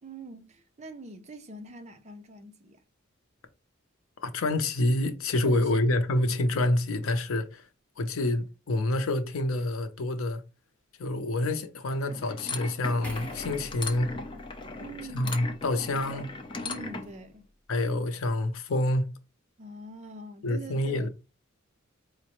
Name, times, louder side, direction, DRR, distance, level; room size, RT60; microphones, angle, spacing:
voice 1, 0.0-2.8 5.4-5.9 14.8-15.5 16.6-17.5 19.6-21.1, right 1 dB, 35° right, 0.5 m, -44 dB
voice 2, 4.2-7.6 8.0-10.4 11.0-14.1 15.1-16.4 17.7-19.1 20.4-21.1, left 1 dB, 80° left, 0.6 m, -27 dB
sound 1, 11.9-17.1, left 3 dB, 25° left, 0.5 m, -38 dB
sound 2, 13.0-16.4 16.8-16.9, equal, 5° left, 1.1 m, -47 dB
4.8 x 2.1 x 2.9 m
head